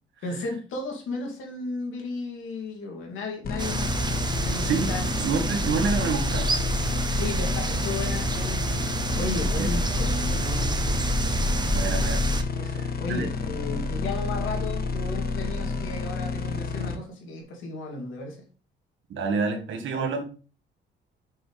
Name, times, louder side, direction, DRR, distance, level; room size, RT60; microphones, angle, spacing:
voice 1, 0.2-5.0 7.2-11.0 11.3-11.6 12.5-18.4 19.9-20.2, left 3 dB, 85° left, 0 dB, 2.6 m, -35 dB
sound 1, 3.4-17.0, left 4 dB, 50° left, 1.1 m, -30 dB
sound 2, 3.6-12.4, right 2 dB, 20° right, 0.8 m, -28 dB
voice 2, 4.6-6.5 9.6-9.7 11.7-12.2 12.8-13.3 19.1-20.2, right 5 dB, 75° right, 5 dB, 1.7 m, -28 dB
6.3 x 5.9 x 3.3 m, 0.36 s
cardioid pair, 90°, 20 cm